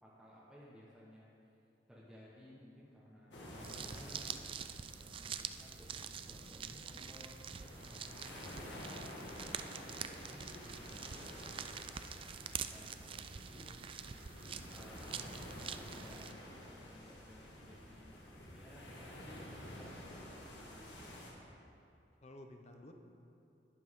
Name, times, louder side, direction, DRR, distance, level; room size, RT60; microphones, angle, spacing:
voice 1, 0.0-1.3 1.9-7.4 7.8-11.7 12.2-13.7 14.7-19.4 19.7-21.2, equal, 5° right, -8 dB, 1.3 m, -58 dB
sound 1, 3.3-21.3, left 1 dB, 80° left, 1.9 m, -51 dB
sound 2, 3.6-16.3, right 7 dB, 30° right, 0.3 m, -46 dB
voice 2, 13.6-14.5 22.2-22.9, left 1 dB, 40° left, 4 dB, 0.8 m, -56 dB
11.5 x 10.5 x 3.7 m, 2.7 s
head